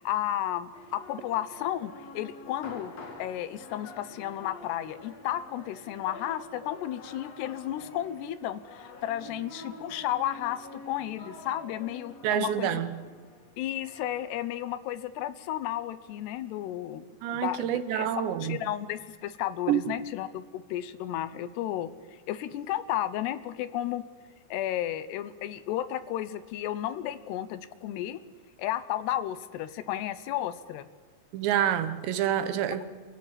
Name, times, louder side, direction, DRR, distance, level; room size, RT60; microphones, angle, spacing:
voice 1, 0.0-2.9 3.2-12.8 13.6-17.1 17.3-24.0 24.5-28.2 28.6-30.9, left 12 dB, 80° left, 2.9 m, -33 dB
sound 1, 0.7-14.6, left 2 dB, 45° left, 3.0 m, -47 dB
voice 2, 12.2-13.0 17.2-18.6 19.7-20.0 31.3-32.8, right 10 dB, 90° right, 3.4 m, -27 dB
28.0 x 16.0 x 8.9 m
omnidirectional pair, 4.9 m